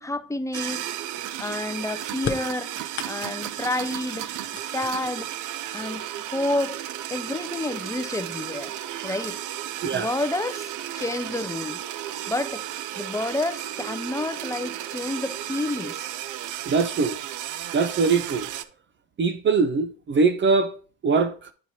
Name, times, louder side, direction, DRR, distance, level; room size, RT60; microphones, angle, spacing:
voice 1, 0.0-0.8 1.4-2.7 3.1-5.3 5.7-6.8 7.1-8.7 9.0-9.4 9.9-11.8 12.3-12.6 13.0-16.0, left 2 dB, 10° left, 0.5 m, -29 dB
sound 1, 0.5-18.6, right 12 dB, 85° right, 0.5 m, -34 dB
sound 2, 2.2-3.6 4.2-5.3 6.4-6.5 7.5-7.6 8.0-8.5, left 7 dB, 40° left, 0.7 m, -35 dB
voice 2, 16.7-17.2 17.7-18.5 19.2-20.8 21.0-21.5, right 4 dB, 40° right, 0.5 m, -22 dB
9.6 x 4.4 x 2.7 m
cardioid pair, 90°, 30 cm